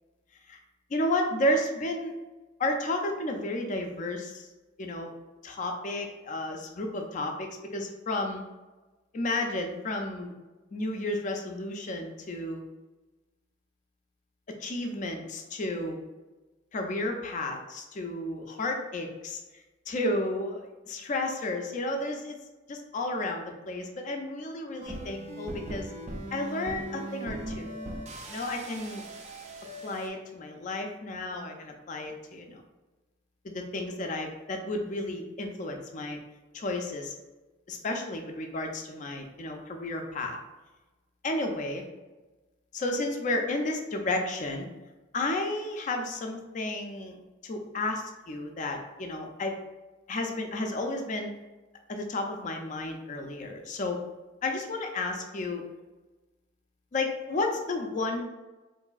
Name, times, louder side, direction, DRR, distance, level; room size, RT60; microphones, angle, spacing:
voice 1, 0.9-2.1 2.6-4.5 4.8-5.1 5.4-8.4 9.1-10.3 10.7-12.6 14.6-16.0 16.7-19.4 19.9-22.4 22.7-25.9 26.3-27.8 28.3-29.0 29.8-32.6 33.4-36.2 36.5-37.1 37.7-40.4 41.2-41.8 42.7-44.7 45.1-47.2 47.4-49.6 50.1-51.3 51.9-54.0 54.4-55.6 56.9-58.2, left 2 dB, 35° left, 3 dB, 0.4 m, -32 dB
sound 1, 24.8-30.1, right 1 dB, 35° right, 0.4 m, -39 dB
3.8 x 2.6 x 2.3 m, 1.2 s
head